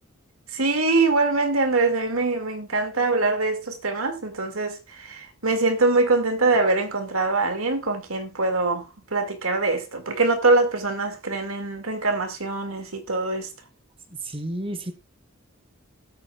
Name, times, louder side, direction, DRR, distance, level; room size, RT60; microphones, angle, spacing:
voice 1, 0.5-8.8 9.1-13.5, right 3 dB, 75° right, 2.3 m, -23 dB
voice 2, 14.1-14.9, right 1 dB, 25° right, 1.3 m, -31 dB
19.5 x 8.6 x 2.4 m
head